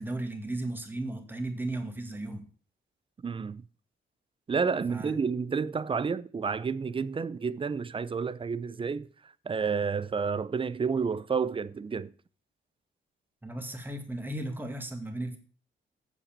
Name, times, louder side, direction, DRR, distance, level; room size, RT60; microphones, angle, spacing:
voice 1, 0.0-2.5 4.9-5.1 13.4-15.4, right 1 dB, 10° right, 2.1 m, -35 dB
voice 2, 3.2-3.6 4.5-9.1 9.5-12.1, right 5 dB, 30° right, 0.6 m, -30 dB
8.2 x 7.2 x 7.3 m
cardioid pair, 115°, 19 cm